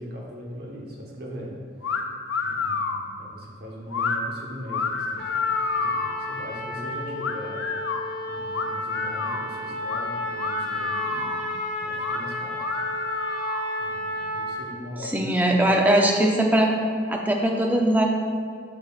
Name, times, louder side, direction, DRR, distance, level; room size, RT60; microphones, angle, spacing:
voice 1, 0.0-1.5 2.4-7.6 8.3-11.3 11.8-12.6 13.8-15.6, equal, 55° right, -2 dB, 1.0 m, -40 dB
sound 1, 1.8-2.0 2.3-3.0 3.9-4.2 4.7-6.2 7.2-8.0 8.5-9.5 9.9-10.0 10.4-11.4 12.0-12.2 12.6-13.7, left 5 dB, 85° left, 0.4 m, -29 dB
Trumpet, 5.2-14.7, left 1 dB, 50° left, 1.2 m, -32 dB
voice 2, 15.0-16.7 17.1-18.1, right 1 dB, 10° right, 1 dB, 0.4 m, -20 dB
6.6 x 6.4 x 2.4 m, 2.2 s
head